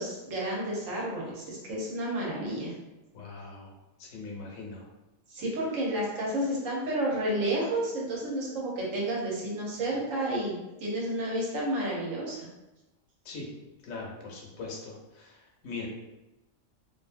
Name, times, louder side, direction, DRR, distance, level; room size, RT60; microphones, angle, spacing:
voice 1, 0.0-2.7 5.3-12.5, right 1 dB, 70° right, -4 dB, 1.1 m, -31 dB
voice 2, 3.1-3.7 4.0-4.8 13.2-13.5 13.8-15.9, left 3 dB, 75° left, -1 dB, 1.0 m, -41 dB
2.6 x 2.6 x 2.4 m, 1.0 s
omnidirectional pair, 1.4 m